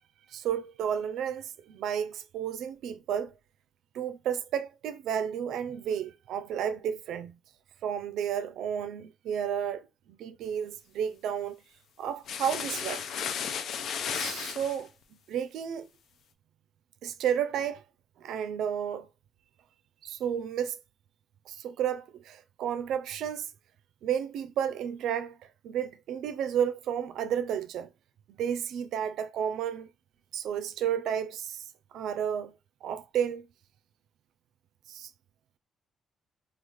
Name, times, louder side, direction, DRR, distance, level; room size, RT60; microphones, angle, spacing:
voice 1, 0.3-3.3 3.9-7.4 7.8-9.9 10.2-11.6 12.0-13.0 14.1-14.9 15.3-15.9 17.0-17.8 18.2-19.1 20.0-20.8 21.5-23.5 24.0-25.4 25.6-27.9 28.4-29.9 30.3-31.6 31.9-32.6 32.8-33.5 34.9-35.1, right 9 dB, 80° right, 0.4 m, -32 dB
sound 1, 12.3-14.8, left 7 dB, 70° left, 0.4 m, -34 dB
3.4 x 2.4 x 3.1 m
cardioid pair, 90°, 0 cm